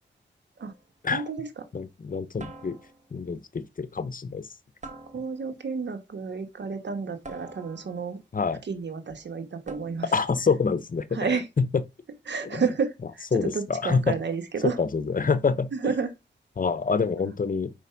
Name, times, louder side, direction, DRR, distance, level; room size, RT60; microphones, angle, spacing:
sound 1, 0.6-0.9 2.4-3.2 4.8-5.7 7.2-8.2 9.7-10.3, right 2 dB, 40° right, 1.6 m, -45 dB
voice 1, 1.1-1.5 5.1-8.2 8.7-10.1 11.1-11.5 12.3-14.8 15.7-16.1 17.2-17.3, right 5 dB, 75° right, 1.4 m, -30 dB
voice 2, 1.7-2.8 3.1-4.5 8.3-8.6 10.1-11.2 11.6-11.7 12.4-12.7 13.3-14.1 14.6-15.9 16.6-17.7, left 5 dB, 50° left, 0.8 m, -26 dB
5.1 x 4.8 x 5.8 m
cardioid pair, 55°, 18 cm